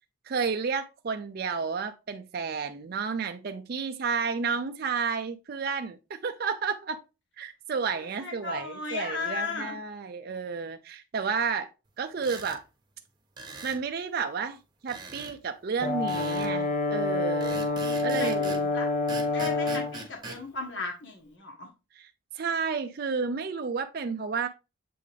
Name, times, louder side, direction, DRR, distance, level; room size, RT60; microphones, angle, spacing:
voice 1, 0.3-7.0 7.4-11.7 12.0-12.6 13.6-14.6 14.8-17.6 18.0-18.7 21.9-22.1 22.3-24.5, right 5 dB, 45° right, 0.4 m, -31 dB
voice 2, 8.2-9.8 18.2-18.9 19.3-21.7, left 4 dB, 60° left, 1.4 m, -35 dB
sound 1, 12.2-12.6 13.4-13.8 14.9-15.4 16.1-16.5 17.4-18.7 19.1-20.4, right 3 dB, 20° right, 1.1 m, -41 dB
Brass instrument, 15.8-20.0, left 3 dB, 35° left, 0.7 m, -27 dB
7.5 x 3.7 x 3.4 m
head